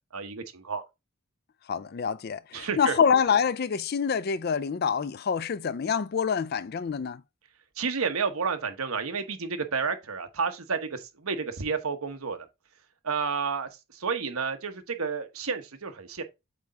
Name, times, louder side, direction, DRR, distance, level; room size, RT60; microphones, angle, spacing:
voice 1, 0.1-0.8 2.5-3.0 7.8-12.5 13.0-16.2, right 5 dB, 80° right, 1.1 m, -31 dB
voice 2, 1.7-7.2, left 6 dB, 45° left, 0.4 m, -26 dB
8.1 x 3.4 x 3.9 m
head